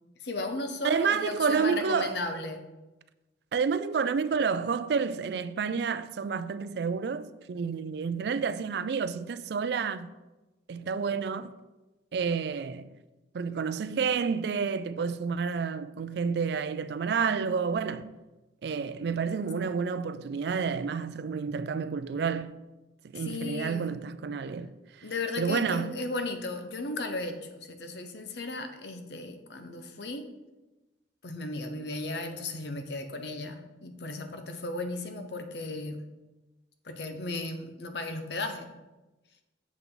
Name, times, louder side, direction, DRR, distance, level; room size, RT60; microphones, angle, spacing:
voice 1, 0.2-2.6 23.1-23.9 25.0-30.3 31.2-36.1 36.8-38.7, left 2 dB, 65° left, 0.8 m, -35 dB
voice 2, 0.8-2.2 3.5-10.1 10.7-11.5 12.1-12.9 13.3-18.1 18.6-22.6 23.0-25.1 25.4-26.0, right 5 dB, 60° right, 0.3 m, -30 dB
7.3 x 5.7 x 3.9 m
head